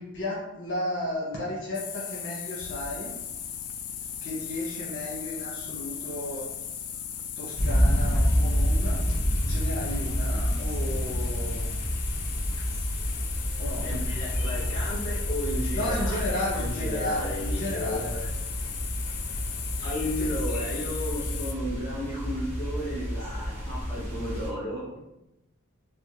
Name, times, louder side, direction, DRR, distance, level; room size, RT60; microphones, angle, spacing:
voice 1, 0.0-3.1 4.2-6.5 7.3-9.2 9.5-11.7 13.6-13.8 15.7-18.1 20.2-20.3, left 1 dB, 55° left, -7 dB, 1.1 m, -33 dB
sound 1, 1.7-21.5, left 8 dB, 80° left, 0.4 m, -37 dB
sound 2, 7.6-24.5, equal, 35° right, 1.0 m, -29 dB
voice 2, 13.8-18.3 19.8-24.9, equal, 25° left, -7 dB, 1.2 m, -34 dB
3.4 x 2.2 x 3.0 m, 0.93 s
head